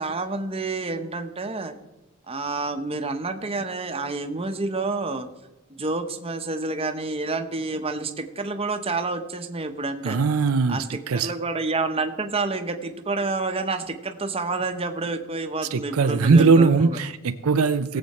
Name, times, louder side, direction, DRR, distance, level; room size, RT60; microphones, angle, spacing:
voice 1, 0.0-1.7 2.3-5.3 5.7-10.2 10.7-10.9 11.1-17.0, right 3 dB, 25° right, 7 dB, 1.0 m, -28 dB
voice 2, 10.0-11.3 15.7-18.0, right 4 dB, 75° right, 11 dB, 0.5 m, -20 dB
19.0 x 7.8 x 4.3 m, 1.0 s
head